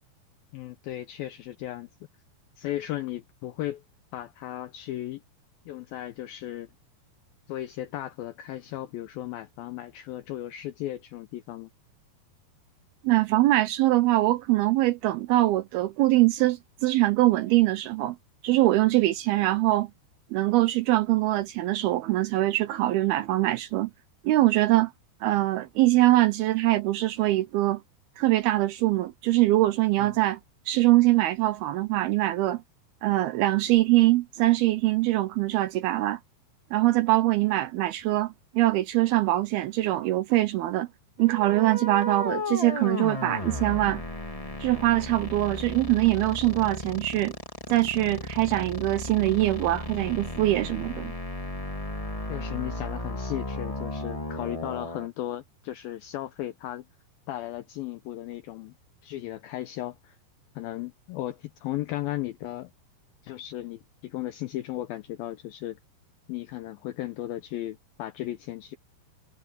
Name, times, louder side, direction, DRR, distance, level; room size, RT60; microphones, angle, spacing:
voice 1, 0.5-1.9 2.6-3.8 4.1-5.2 5.7-6.7 7.5-11.7 30.0-30.1 52.2-56.8 57.3-58.7 59.0-60.2 60.6-62.7 63.2-65.8 66.3-68.8, left 14 dB, 85° left, 2.1 m, -35 dB
voice 2, 13.0-18.2 18.4-19.9 20.3-23.9 24.2-24.9 25.2-27.8 28.2-30.4 30.7-32.6 33.0-36.2 36.7-40.9 41.2-44.0 44.6-47.3 47.7-51.1, right 17 dB, 80° right, 2.3 m, -23 dB
sound 1, 41.2-55.1, left 1 dB, 25° left, 0.8 m, -35 dB
omnidirectional pair, 5.1 m